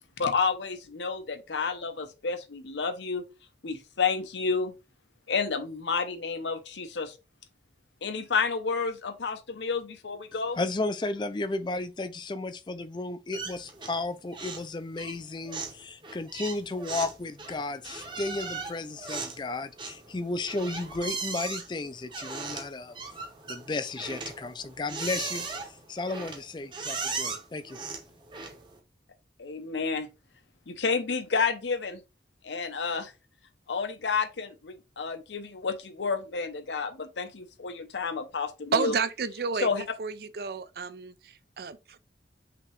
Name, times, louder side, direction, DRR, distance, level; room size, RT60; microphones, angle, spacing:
voice 1, 0.2-3.2 3.6-4.7 5.3-7.1 8.0-10.6 29.4-30.1 30.7-32.0 32.4-33.1 33.7-38.9 39.6-39.8, left 5 dB, 80° left, 0.7 m, -30 dB
voice 2, 10.6-22.9 23.5-27.8, left 2 dB, 25° left, 0.4 m, -34 dB
sound 1, 13.3-14.1 14.3-14.7 15.0-28.8, right 4 dB, 25° right, 0.9 m, -38 dB
voice 3, 38.7-42.0, right 5 dB, 60° right, 0.4 m, -31 dB
5.8 x 2.9 x 3.1 m
head